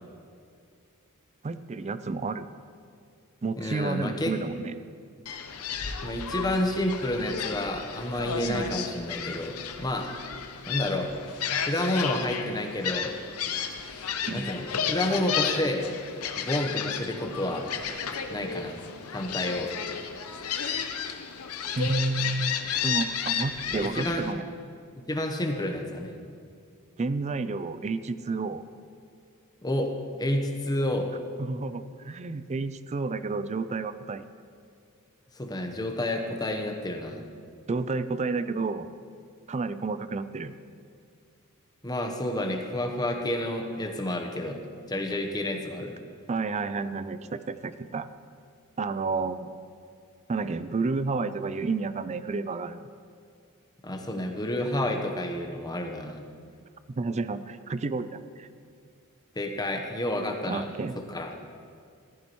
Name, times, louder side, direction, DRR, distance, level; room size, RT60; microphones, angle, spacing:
voice 1, 1.4-2.5 3.4-4.7 8.5-8.7 14.3-14.5 21.8-24.4 27.0-28.6 31.4-34.2 37.7-38.9 39.5-40.5 46.3-48.1 48.8-49.5 50.3-52.9 56.9-58.5 60.5-61.0, right 3 dB, 30° right, 13 dB, 0.4 m, -31 dB
voice 2, 3.6-4.3 6.0-10.1 10.7-11.1 11.6-13.1 14.3-15.9 16.4-17.7 18.3-18.8 19.1-19.7 23.7-24.2 25.1-26.1 29.6-29.9 30.2-31.1 35.4-37.2 41.8-44.6 44.9-45.9 53.8-56.3 59.3-60.7 61.1-61.3, left 1 dB, 20° left, 4 dB, 1.0 m, -30 dB
Gull seagull, 5.3-24.3, left 7 dB, 70° left, 0.8 m, -33 dB
14.5 x 14.0 x 3.1 m, 2.3 s
head